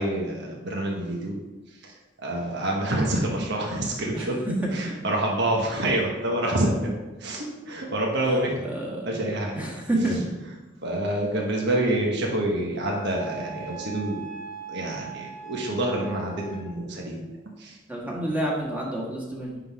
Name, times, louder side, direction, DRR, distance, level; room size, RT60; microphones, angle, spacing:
voice 1, 0.0-1.4 1.8-1.9 2.2-4.4 4.7-6.8 7.2-8.7 9.0-9.7 10.8-14.2 14.7-17.2 17.6-17.8, right 1 dB, 60° right, -1 dB, 1.4 m, -27 dB
voice 2, 4.6-5.0 8.7-9.3 9.5-10.2 17.9-19.6, right 1 dB, 10° right, -4 dB, 1.7 m, -29 dB
Wind instrument woodwind instrument, 12.8-16.7, right 5 dB, 80° right, 2.8 m, -40 dB
9.7 x 3.9 x 4.8 m, 1.1 s
head